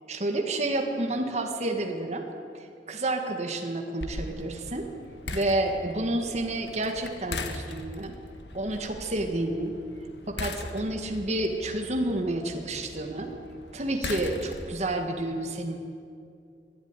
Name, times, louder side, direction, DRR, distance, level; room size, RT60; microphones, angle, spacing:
voice 1, 0.1-2.3 2.5-4.9 5.3-8.2 8.5-9.7 10.3-13.3 13.7-15.8, right 1 dB, 40° right, 3 dB, 1.8 m, -30 dB
sound 1, 4.0-14.9, left 2 dB, 80° left, 1.6 m, -40 dB
22.0 x 12.5 x 9.7 m, 2.4 s
head